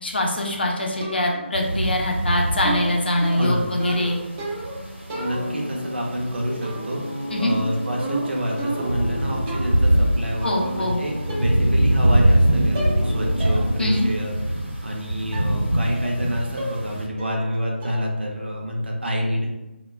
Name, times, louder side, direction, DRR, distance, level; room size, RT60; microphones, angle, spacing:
voice 1, 0.0-4.2 7.3-7.6 10.4-11.0 13.8-14.1, left 1 dB, 55° left, 0 dB, 0.5 m, -23 dB
sound 1, 1.0-1.6 2.6-4.8 5.1-5.8 6.6-7.0 7.3-9.1 9.5-9.8 10.8-10.9 11.3-11.8 12.0-12.4 12.7-13.1 13.4-13.6 14.0-14.1 15.3-15.5 15.9-16.3 16.6-16.9 17.2-17.5 17.8-18.2, right 2 dB, 15° right, 0.4 m, -32 dB
sound 2, 1.5-17.0, right 1 dB, 90° right, 0.9 m, -24 dB
voice 2, 3.4-3.7 5.2-19.6, equal, 60° right, -1 dB, 0.6 m, -28 dB
sound 3, 5.1-14.1, left 1 dB, 15° left, 0.7 m, -34 dB
2.2 x 2.1 x 3.3 m, 1.0 s
figure-of-eight pair, 155°, 7 cm